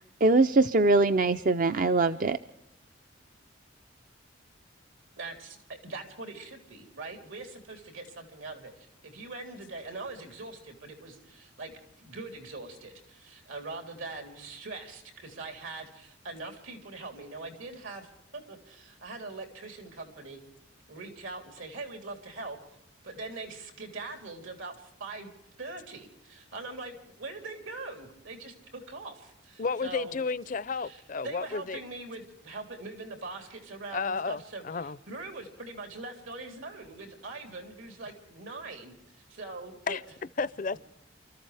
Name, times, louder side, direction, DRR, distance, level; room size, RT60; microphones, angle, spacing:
voice 1, 0.0-2.4, right 3 dB, 40° right, 10 dB, 0.5 m, -23 dB
voice 2, 5.2-11.7 12.0-18.1 18.3-20.4 20.9-22.6 23.0-25.3 25.6-30.1 30.8-38.9 39.3-40.0, right 3 dB, 80° right, 3 dB, 3.6 m, -42 dB
voice 3, 29.6-31.8 33.9-35.0 39.9-40.0 40.4-40.8, left 4 dB, 40° left, 17 dB, 0.5 m, -32 dB
28.5 x 14.0 x 3.4 m, 0.82 s
head